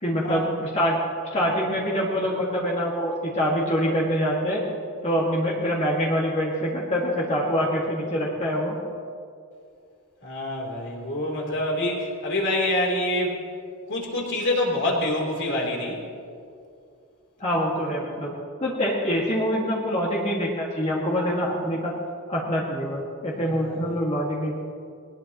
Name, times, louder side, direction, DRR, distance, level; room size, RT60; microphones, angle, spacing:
voice 1, 0.0-1.0 1.3-4.6 5.0-8.8 17.4-18.3 18.6-21.9 22.3-24.5, equal, 30° left, -4 dB, 2.0 m, -25 dB
voice 2, 10.2-13.4 13.9-16.0 23.3-23.8, left 1 dB, 55° left, -1 dB, 3.5 m, -26 dB
20.5 x 19.5 x 3.1 m, 2.4 s
head